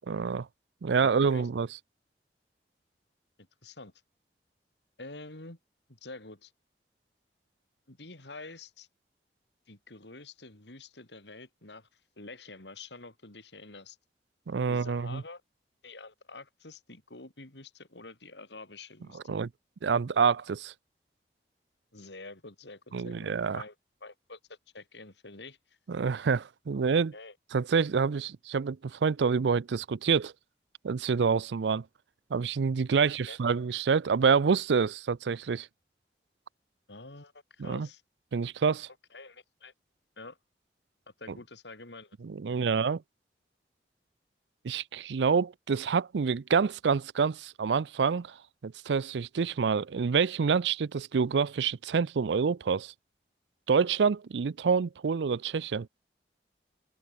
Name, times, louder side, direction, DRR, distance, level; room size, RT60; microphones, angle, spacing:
voice 1, 0.1-0.5 0.8-1.7 14.5-15.2 19.3-19.5 19.8-20.7 22.9-23.6 25.9-27.1 27.5-30.3 30.8-31.8 32.3-35.7 37.6-37.9 38.3-38.9 42.2-43.0 44.6-48.3 48.6-52.9 53.7-55.9, right 5 dB, 90° right, 0.5 m, -27 dB
voice 2, 0.9-1.5 3.6-3.9 5.0-5.6 5.9-6.5 7.9-8.9 9.7-14.0 14.7-15.4 15.8-19.3 21.9-23.7 24.0-25.8 27.1-27.4 33.0-33.4 36.9-38.0 39.1-39.7 40.2-40.4 41.2-42.2, left 3 dB, 90° left, 3.9 m, -47 dB
open air
head